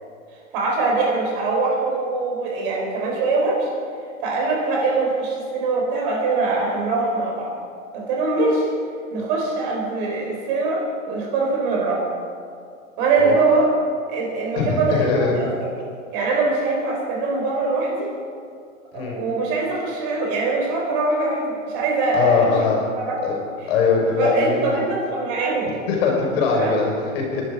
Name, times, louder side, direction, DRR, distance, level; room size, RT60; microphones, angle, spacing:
voice 1, 0.5-3.7 4.2-7.5 7.9-8.7 9.1-12.0 13.0-13.7 14.1-15.5 16.1-18.1 18.9-22.6 23.0-23.2 23.6-23.7 24.2-25.7 26.6-26.8, right 3 dB, 40° right, -1 dB, 4.6 m, -22 dB
voice 2, 14.5-15.3 18.9-19.2 22.1-22.8 23.2-23.4 23.7-24.8 25.7-27.4, left 5 dB, 50° left, 0 dB, 4.7 m, -21 dB
21.5 x 11.5 x 4.8 m, 2.3 s
hypercardioid pair, 145°, 41 cm